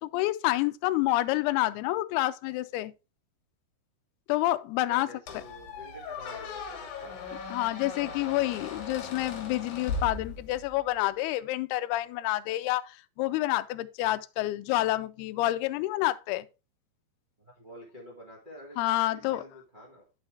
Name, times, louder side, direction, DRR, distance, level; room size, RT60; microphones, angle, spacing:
voice 1, 0.0-2.9 4.3-5.4 7.5-16.5 18.8-19.4, left 16 dB, 85° left, 2.3 m, -28 dB
voice 2, 4.9-7.1 17.4-18.8 19.1-20.0, left 1 dB, 85° right, 0.4 m, -48 dB
Squeak, 5.3-10.8, left 4 dB, 65° left, 2.9 m, -38 dB
9.8 x 5.8 x 3.3 m
omnidirectional pair, 5.0 m